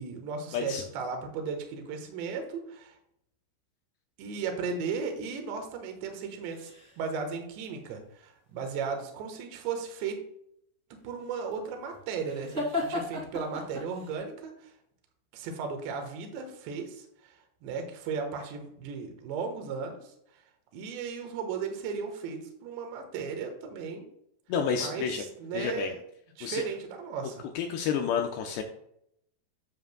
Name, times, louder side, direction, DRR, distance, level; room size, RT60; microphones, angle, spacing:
voice 1, 0.0-2.9 4.2-10.2 10.9-14.7 15.3-17.3 17.6-20.0 20.7-24.1 24.8-25.1 25.4-26.0 26.4-27.5, right 5 dB, 75° right, 4 dB, 3.3 m, -36 dB
voice 2, 0.5-0.8 24.5-25.2 25.5-25.9 26.4-26.6 27.6-28.6, left 7 dB, 85° left, 3 dB, 2.5 m, -30 dB
sound 1, 6.2-7.2 11.0-14.2, left 2 dB, 25° right, 1.6 m, -36 dB
10.5 x 7.5 x 2.2 m, 0.73 s
omnidirectional pair, 5.5 m